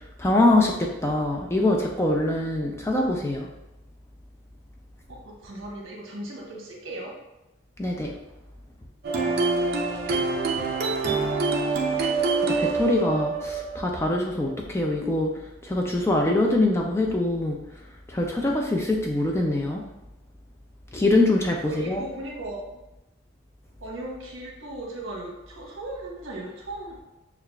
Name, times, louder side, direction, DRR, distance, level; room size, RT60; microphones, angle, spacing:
voice 1, 0.2-3.5 7.8-8.1 12.4-15.3 15.6-17.6 18.1-19.8 20.9-22.0, left 2 dB, 15° left, 0 dB, 0.3 m, -23 dB
voice 2, 5.1-7.1 21.6-22.8 23.8-27.0, right 1 dB, 65° right, -2 dB, 1.0 m, -37 dB
sound 1, 9.0-14.6, right 3 dB, 50° right, 0.6 m, -26 dB
6.4 x 2.4 x 2.3 m, 0.95 s
head